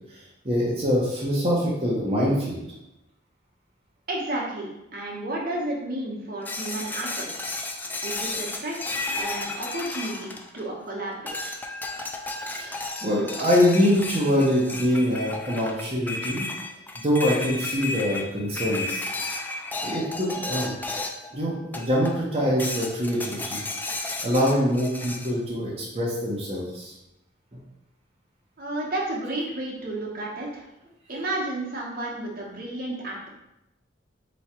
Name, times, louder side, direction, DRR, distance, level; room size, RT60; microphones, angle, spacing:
voice 1, 0.1-2.6 12.4-16.5 17.0-19.1 19.8-20.7 21.3-23.6 24.2-26.9, equal, 30° right, -6 dB, 0.8 m, -24 dB
voice 2, 4.1-7.5 8.0-8.8 9.1-11.5 28.6-30.6 31.1-33.3, right 1 dB, 55° right, -3 dB, 1.1 m, -32 dB
sound 1, 6.5-10.8 11.3-21.3 21.7-22.2 22.6-25.3, left 2 dB, 10° left, 0.3 m, -33 dB
3.5 x 3.1 x 4.3 m, 0.91 s
head